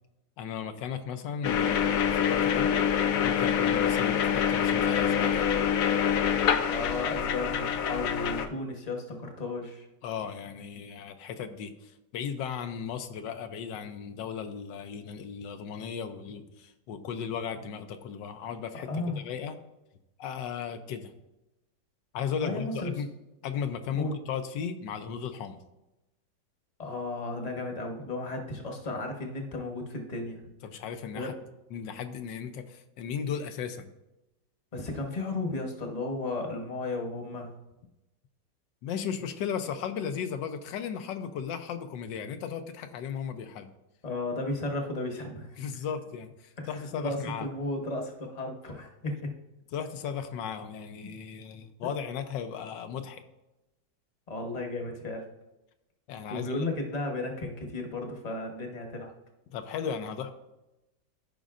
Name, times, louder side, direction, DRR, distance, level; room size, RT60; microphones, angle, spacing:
voice 1, 0.4-2.7 3.2-5.4 10.0-19.5 20.2-21.1 22.1-23.1 23.4-25.6 30.6-31.3 31.7-33.9 38.8-43.7 45.6-47.5 49.7-53.2 56.1-56.7 59.5-60.3, left 7 dB, 85° left, 8 dB, 1.3 m, -36 dB
sound 1, 1.4-8.5, left 8 dB, 65° left, 0.9 m, -26 dB
voice 2, 6.7-9.8 18.9-19.2 22.4-22.9 23.9-24.1 26.8-30.4 31.1-31.4 34.7-37.5 44.0-45.8 46.6-49.3 51.0-51.1 54.3-55.3 56.3-59.1, left 2 dB, 30° left, 2 dB, 0.9 m, -34 dB
14.0 x 5.1 x 2.5 m, 0.95 s
omnidirectional pair, 1.9 m